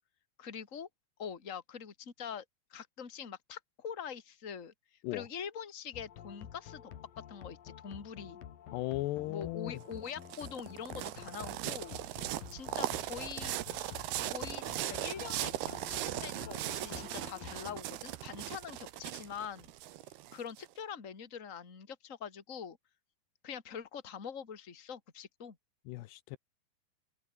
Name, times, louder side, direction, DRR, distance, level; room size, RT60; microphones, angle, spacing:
voice 1, 0.4-0.9 1.2-2.4 2.7-4.7 5.1-6.9 7.3-8.4 9.3-12.0 12.5-13.6 14.2-19.7 20.3-22.8 23.4-25.6, left 7 dB, 25° left, 2.1 m, -44 dB
sound 1, 5.9-17.8, left 9 dB, 60° left, 3.5 m, -50 dB
voice 2, 8.7-9.8 25.9-26.4, left 18 dB, 85° left, 2.9 m, -36 dB
sound 2, 9.8-20.6, right 15 dB, 75° right, 3.0 m, -39 dB
omnidirectional pair, 4.9 m